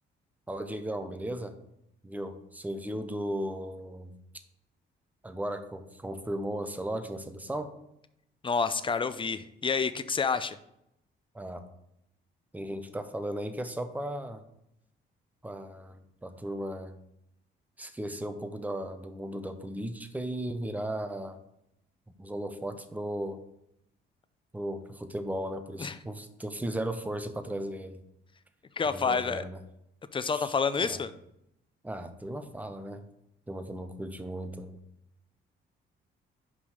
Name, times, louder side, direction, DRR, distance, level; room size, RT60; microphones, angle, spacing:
voice 1, 0.5-1.5 2.0-4.1 5.2-7.7 11.3-11.6 12.5-14.4 15.4-17.0 17.8-21.4 22.2-23.4 24.5-28.0 28.9-29.6 30.3-30.5 30.8-31.0 31.8-33.1 33.5-34.8, right 1 dB, 10° right, 8 dB, 0.8 m, -36 dB
voice 2, 8.4-10.6 25.8-26.0 28.8-29.4 30.1-31.1, left 5 dB, 25° left, 12 dB, 0.5 m, -28 dB
5.3 x 5.1 x 6.4 m, 0.81 s
cardioid pair, 90°, 20 cm